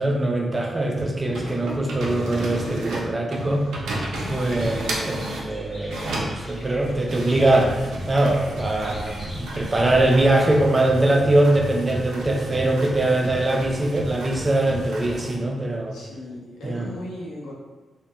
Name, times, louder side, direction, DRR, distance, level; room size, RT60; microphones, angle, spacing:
voice 1, 0.0-3.7 4.3-16.0 16.6-16.9, right 1 dB, 30° right, 1 dB, 0.4 m, -22 dB
sound 1, 0.9-5.5 5.9-15.4, right 1 dB, 90° right, 0.4 m, -33 dB
sound 2, 3.9-10.3, equal, 20° left, 0.6 m, -40 dB
voice 2, 15.9-17.5, left 1 dB, 90° left, -5 dB, 0.6 m, -37 dB
2.2 x 2.1 x 2.8 m, 1.2 s
cardioid pair, 60°, 0 cm